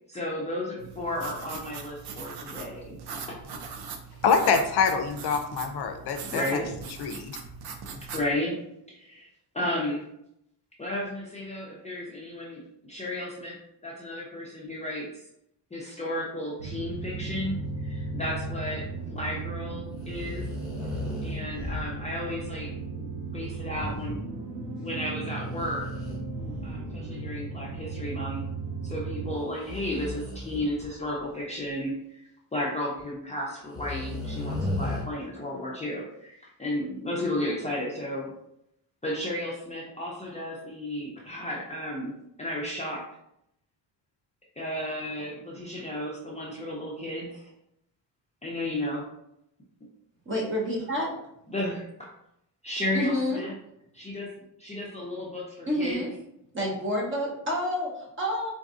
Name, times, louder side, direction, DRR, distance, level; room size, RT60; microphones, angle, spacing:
voice 1, 0.1-3.0 3.3-3.4 6.3-6.7 8.1-8.6 8.9-9.3 9.5-10.0 10.8-12.6 12.9-13.6 13.8-15.1 15.7-20.4 21.2-24.2 24.8-25.9 26.6-28.5 28.8-32.2 32.5-38.3 39.0-43.0 44.6-47.5 48.4-49.1 51.5-51.8 52.6-53.5 53.9-54.3 54.6-56.0, left 1 dB, 15° left, -4 dB, 0.5 m, -33 dB
sound 1, 0.8-8.3, right 5 dB, 65° right, 0.5 m, -41 dB
voice 2, 4.2-6.6 7.0-7.3, left 5 dB, 65° left, 6 dB, 0.5 m, -25 dB
sound 2, 16.6-29.3, right 3 dB, 85° right, 0.9 m, -36 dB
sound 3, 20.0-22.0 25.5-27.1 27.7-27.8 29.6-31.2 33.0-33.1 33.7-35.0, left 1 dB, ahead, 1.0 m, -35 dB
voice 3, 50.2-51.1 52.9-53.4 55.7-56.1 56.5-58.5, left 1 dB, 30° right, -3 dB, 1.0 m, -28 dB
4.0 x 2.5 x 2.4 m, 0.79 s
cardioid pair, 120°, 43 cm